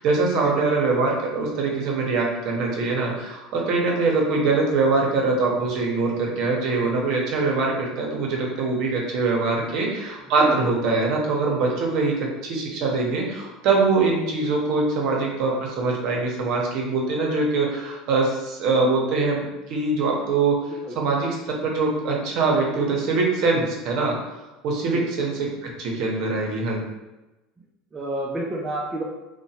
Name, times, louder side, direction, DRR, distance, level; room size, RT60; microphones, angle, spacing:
voice 1, 0.0-20.6 21.0-24.2 24.6-25.3 25.8-26.8, right 3 dB, 60° right, -1 dB, 0.7 m, -23 dB
voice 2, 10.4-10.7 20.8-21.0 24.9-25.1 27.9-29.0, right 2 dB, 20° right, -2 dB, 0.4 m, -29 dB
2.9 x 2.1 x 2.7 m, 1.0 s
supercardioid pair, 125°, 0 cm